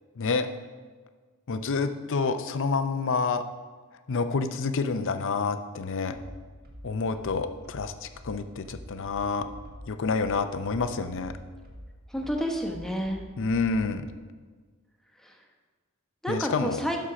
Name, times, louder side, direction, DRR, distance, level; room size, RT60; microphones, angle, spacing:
voice 1, 0.2-0.5 1.5-3.4 4.1-6.2 6.8-9.5 9.9-11.3 13.4-14.1 16.3-16.8, left 4 dB, 60° left, 10 dB, 0.6 m, -28 dB
sound 1, 6.1-14.0, equal, 45° right, 1.5 m, -46 dB
voice 2, 12.1-13.3 15.2-15.4 16.2-17.0, equal, ahead, 2 dB, 0.9 m, -30 dB
11.0 x 4.4 x 6.0 m, 1.5 s
head